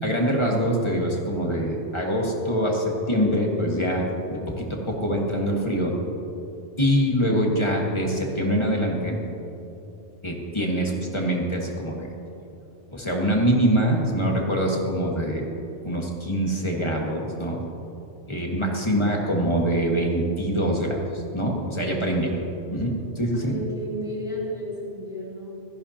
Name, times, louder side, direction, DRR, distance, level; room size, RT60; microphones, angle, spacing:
voice 1, 0.0-6.0 6.8-9.2 10.2-12.1 12.9-15.5 15.8-17.6 18.3-22.4 22.7-23.5, equal, 25° left, -1 dB, 1.6 m, -24 dB
voice 2, 23.3-25.5, equal, 5° right, -7 dB, 3.0 m, -33 dB
16.5 x 14.5 x 2.9 m, 2.8 s
omnidirectional pair, 1.2 m